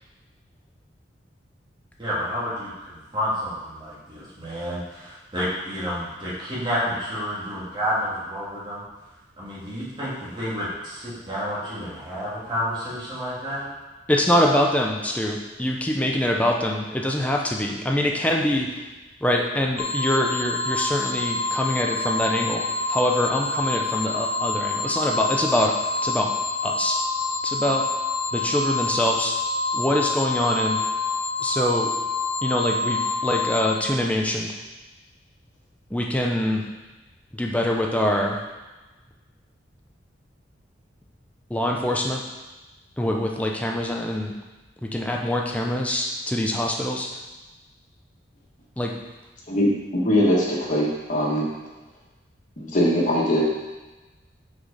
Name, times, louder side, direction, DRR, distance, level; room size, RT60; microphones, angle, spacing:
voice 1, 2.0-8.8 9.4-13.6, equal, 25° right, -9 dB, 2.6 m, -30 dB
voice 2, 14.1-18.7 19.2-22.6 22.9-25.7 26.0-26.3 26.6-27.0 27.4-27.8 28.3-29.3 29.7-30.8 31.4-31.9 32.4-34.5 35.9-36.6 37.3-38.4 41.5-42.2 43.0-44.3 44.9-47.1 48.8-48.9, left 1 dB, 10° left, 0 dB, 0.7 m, -24 dB
sound 1, 19.8-33.8, left 3 dB, 75° left, 1.2 m, -27 dB
voice 3, 49.5-51.4 52.6-53.4, equal, 45° left, -4 dB, 1.7 m, -21 dB
6.2 x 5.1 x 5.0 m, 1.1 s
head